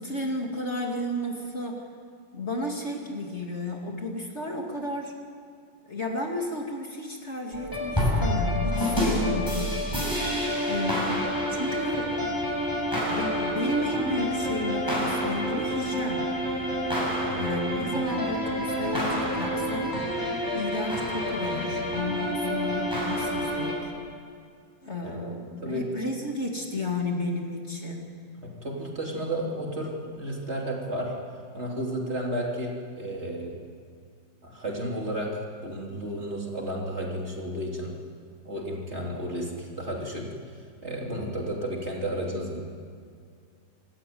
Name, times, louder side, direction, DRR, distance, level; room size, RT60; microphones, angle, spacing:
voice 1, 0.0-1.8 2.3-5.1 5.9-9.8 10.6-12.1 13.0-16.3 17.4-19.9 20.5-23.9 24.8-28.1, left 1 dB, 35° left, 1 dB, 2.7 m, -32 dB
sound 1, 7.5-23.7, equal, 10° left, 7.4 m, -28 dB
voice 2, 28.4-31.1 31.5-33.6 34.4-37.9 38.4-40.3 40.8-42.6, right 1 dB, 35° right, -1 dB, 3.4 m, -32 dB
26.5 x 14.0 x 9.4 m, 2.2 s
omnidirectional pair, 2.0 m